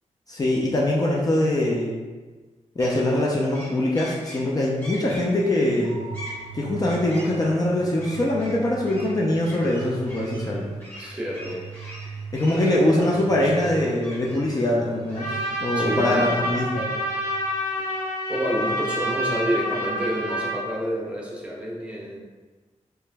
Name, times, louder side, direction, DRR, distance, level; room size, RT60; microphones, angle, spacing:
voice 1, 0.3-1.9 2.8-6.0 6.5-10.7 12.3-16.9, left 1 dB, 30° left, -4 dB, 0.5 m, -23 dB
sound 1, 2.8-16.5, left 1 dB, 15° left, 1.1 m, -44 dB
sound 2, 5.8-17.8, right 6 dB, 50° right, 0.4 m, -41 dB
voice 2, 11.0-11.6 12.5-13.5 15.8-16.5 18.3-22.2, equal, 10° right, -3 dB, 0.7 m, -29 dB
Trumpet, 15.1-20.6, equal, 85° left, 1.2 m, -28 dB
3.2 x 2.9 x 3.4 m, 1.3 s
wide cardioid pair, 140°, 12 cm